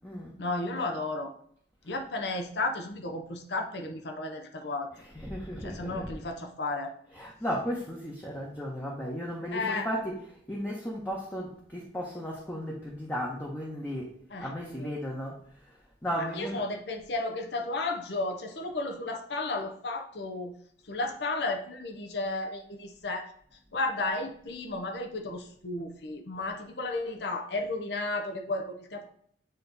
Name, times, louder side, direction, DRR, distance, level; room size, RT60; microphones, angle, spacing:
voice 1, 0.4-1.3 1.8-5.1 5.6-6.9 9.5-9.9 14.3-14.5 14.8-15.0 16.2-20.5 20.9-23.3 23.7-29.1, left 2 dB, 65° left, 3 dB, 0.8 m, -33 dB
voice 2, 4.9-6.1 7.1-15.4 16.0-16.6, equal, 10° left, -3 dB, 0.9 m, -35 dB
8.9 x 3.0 x 4.0 m, 0.62 s
head